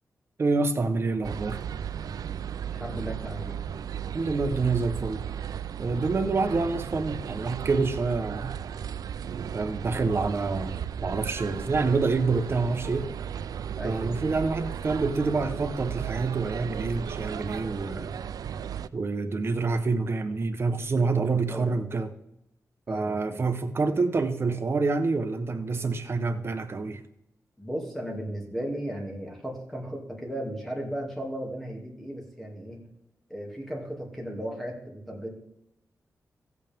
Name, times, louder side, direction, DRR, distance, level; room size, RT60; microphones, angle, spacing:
voice 1, 0.4-1.6 4.1-5.2 5.8-8.6 9.5-10.8 11.0-13.1 13.8-18.2 18.9-22.1 22.9-27.0, right 3 dB, 40° right, 7 dB, 1.0 m, -27 dB
sound 1, 1.2-18.9, right 8 dB, 80° right, 0.4 m, -35 dB
voice 2, 2.7-3.6 13.8-14.1 21.5-21.8 22.9-23.4 27.6-32.8 33.3-35.6, equal, 5° left, -1 dB, 2.4 m, -35 dB
15.0 x 8.3 x 3.6 m, 0.80 s
wide cardioid pair, 140°, 6 cm